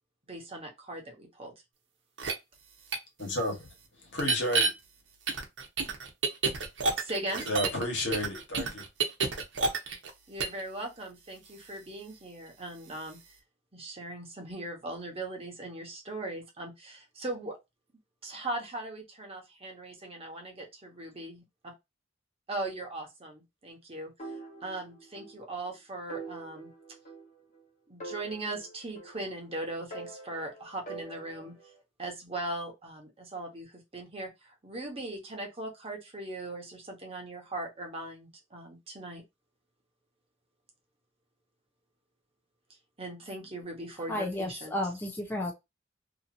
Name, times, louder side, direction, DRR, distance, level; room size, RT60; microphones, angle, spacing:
voice 1, 0.3-1.5 7.0-7.4 10.3-13.2 13.7-17.6 18.2-21.4 22.5-24.1 24.6-26.7 27.9-31.5 32.0-39.2 43.0-44.8, right 2 dB, 35° right, 1.1 m, -39 dB
sound 1, 2.2-2.3 2.9-3.0 4.2-4.7 5.3-7.8 8.1-10.1 10.4-10.6, right 4 dB, 80° right, 0.8 m, -28 dB
voice 2, 3.2-4.7 7.5-8.8, left 1 dB, 80° left, 1.4 m, -32 dB
sound 2, 24.2-25.4 25.7-25.8 26.1-27.6 28.0-29.5 29.9-31.7, right 2 dB, 45° left, 1.1 m, -44 dB
voice 3, 44.1-45.5, left 1 dB, 10° left, 0.6 m, -32 dB
2.9 x 2.7 x 2.6 m
head